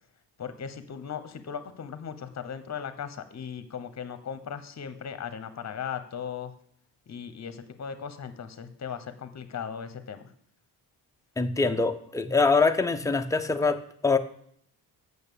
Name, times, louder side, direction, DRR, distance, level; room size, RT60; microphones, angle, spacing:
voice 1, 0.4-6.5 7.1-10.2, left 7 dB, 35° left, 11 dB, 0.9 m, -37 dB
voice 2, 11.4-14.2, left 4 dB, 10° left, 6 dB, 0.5 m, -24 dB
8.7 x 6.7 x 6.9 m, 0.64 s
wide cardioid pair, 160°, 45 cm